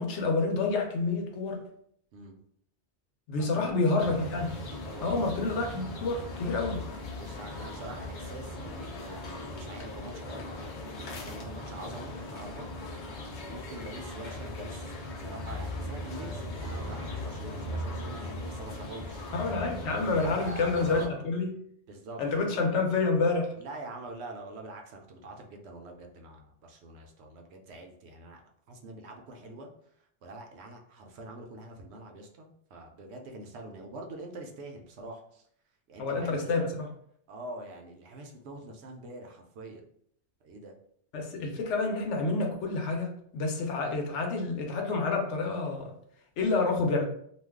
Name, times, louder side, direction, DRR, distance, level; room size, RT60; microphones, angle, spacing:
voice 1, 0.0-1.6 3.3-4.5 5.0-6.8 19.3-21.5 22.2-23.5 36.0-36.9 41.1-45.9 46.4-47.0, left 3 dB, 80° left, 2 dB, 1.0 m, -28 dB
voice 2, 3.4-4.0 4.8-5.2 7.1-10.5 10.8-12.7 13.4-19.3 20.2-21.2 21.9-22.6 23.5-28.4 28.7-29.7 30.0-35.4 35.9-36.7 37.3-39.8 40.4-40.7, right 2 dB, 70° right, 2 dB, 0.8 m, -45 dB
sound 1, 4.0-21.1, left 1 dB, 55° left, 0.6 m, -39 dB
2.5 x 2.3 x 3.4 m, 0.66 s
omnidirectional pair, 1.2 m